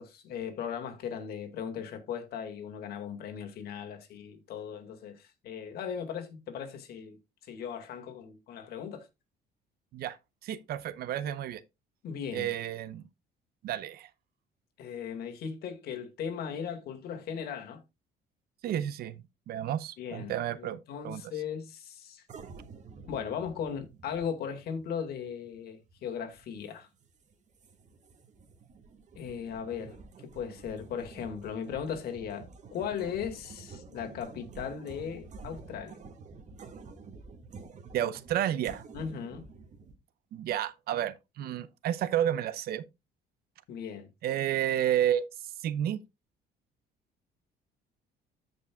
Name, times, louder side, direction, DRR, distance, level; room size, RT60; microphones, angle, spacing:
voice 1, 0.0-7.2 7.4-9.1 12.0-12.5 14.8-17.8 20.0-22.2 23.1-26.9 29.2-30.0 30.3-36.0 38.9-39.4 43.7-44.1, left 7 dB, 70° left, 2.1 m, -37 dB
voice 2, 10.4-11.6 12.3-13.0 13.6-14.1 18.6-19.1 19.5-21.2 37.9-38.8 40.3-42.8 44.2-45.2 45.6-46.0, right 11 dB, 65° right, 0.7 m, -31 dB
sound 1, 22.3-40.0, right 4 dB, 45° right, 1.9 m, -49 dB
14.5 x 5.4 x 2.3 m
cardioid pair, 110°, 17 cm